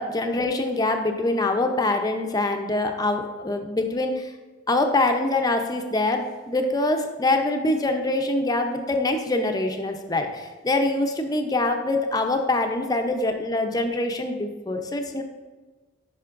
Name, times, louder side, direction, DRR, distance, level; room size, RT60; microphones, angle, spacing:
voice 1, 0.0-4.3 4.7-15.2, left 2 dB, 20° left, 5 dB, 0.6 m, -24 dB
10.5 x 5.5 x 2.5 m, 1.3 s
head